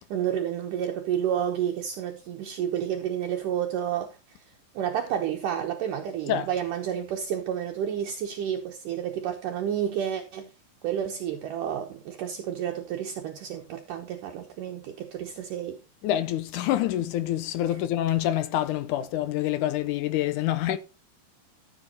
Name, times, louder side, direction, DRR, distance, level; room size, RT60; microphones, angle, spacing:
voice 1, 0.1-10.5 10.8-15.8 17.7-17.8, right 9 dB, 70° right, 2.4 m, -30 dB
voice 2, 16.0-20.8, left 12 dB, 75° left, 1.9 m, -26 dB
13.5 x 7.3 x 4.1 m
omnidirectional pair, 4.2 m